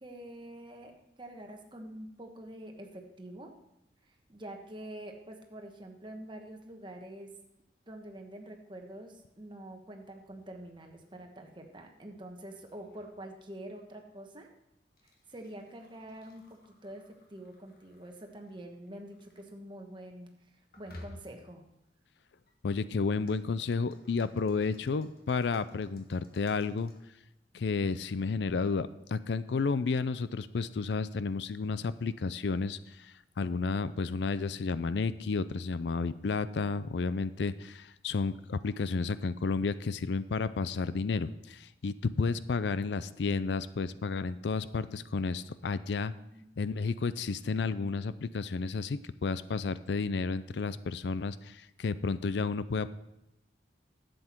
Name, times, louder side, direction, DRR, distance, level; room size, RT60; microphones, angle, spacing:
voice 1, 0.0-0.9 1.2-3.5 4.1-7.3 7.9-14.5 15.3-20.3 20.8-21.6 46.3-46.4, right 1 dB, 25° right, 3 dB, 1.3 m, -46 dB
sound 1, 10.1-19.5 20.7-21.6 22.5-27.1, left 1 dB, 55° left, 1.6 m, -58 dB
voice 2, 22.6-26.9 27.5-46.1 46.6-52.9, left 4 dB, 70° left, 15 dB, 0.4 m, -32 dB
11.0 x 7.8 x 4.5 m, 0.90 s
head